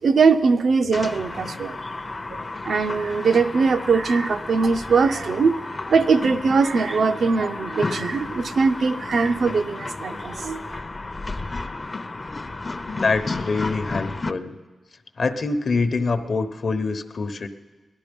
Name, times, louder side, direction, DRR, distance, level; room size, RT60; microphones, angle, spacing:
voice 1, 0.0-1.8 2.6-5.5 5.9-10.8, right 4 dB, 70° right, 8 dB, 0.5 m, -21 dB
sound 1, 0.9-14.3, left 3 dB, 30° left, 0.5 m, -33 dB
voice 2, 12.9-14.6 15.2-17.5, left 4 dB, 55° left, 9 dB, 0.8 m, -25 dB
17.5 x 12.0 x 5.2 m, 1.3 s
cardioid pair, 75°, 0 cm